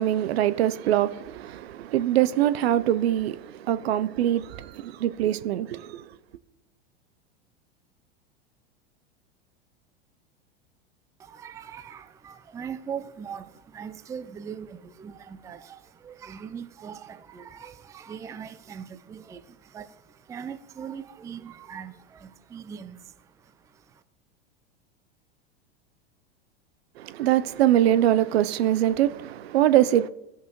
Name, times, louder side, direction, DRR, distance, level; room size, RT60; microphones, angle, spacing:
voice 1, 0.0-6.1 27.0-30.1, right 12 dB, 75° right, 0.5 m, -23 dB
voice 2, 11.2-24.0, right 7 dB, 10° right, 0.3 m, -41 dB
15.0 x 5.4 x 3.0 m
hypercardioid pair, 100°, 31 cm